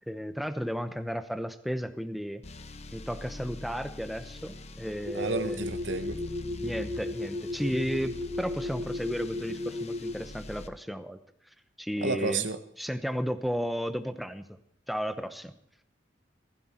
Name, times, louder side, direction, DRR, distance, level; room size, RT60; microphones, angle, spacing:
voice 1, 0.0-2.4 2.9-5.7 6.6-11.2 11.8-12.5 12.8-14.4 14.9-15.5, equal, ahead, 9 dB, 0.9 m, -33 dB
sound 1, 2.4-10.7, left 2 dB, 35° left, 0.9 m, -44 dB
sound 2, 5.0-10.1, left 2 dB, 60° right, 2.4 m, -35 dB
voice 2, 5.1-6.2 12.0-12.6, right 4 dB, 85° right, 9 dB, 1.1 m, -31 dB
16.0 x 15.5 x 4.5 m, 0.71 s
head